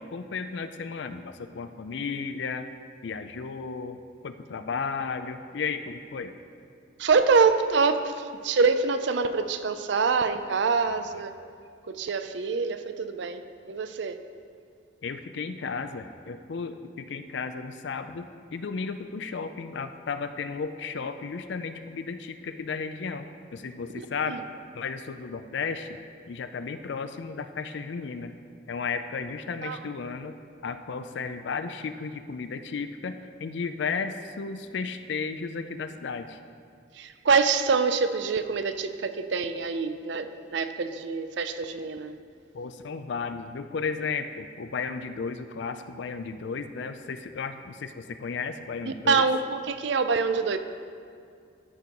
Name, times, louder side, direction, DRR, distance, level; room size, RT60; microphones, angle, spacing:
voice 1, 0.0-2.7 3.0-6.3 10.8-11.2 15.0-23.3 23.5-24.4 24.7-26.0 26.3-28.3 28.7-30.4 30.6-36.4 42.5-49.3, left 5 dB, 65° left, 9 dB, 0.4 m, -34 dB
voice 2, 7.0-11.4 11.9-14.2 23.9-24.4 29.6-29.8 37.0-42.2 48.9-50.6, right 4 dB, 65° right, 10 dB, 0.5 m, -25 dB
13.0 x 4.6 x 5.2 m, 2.2 s
head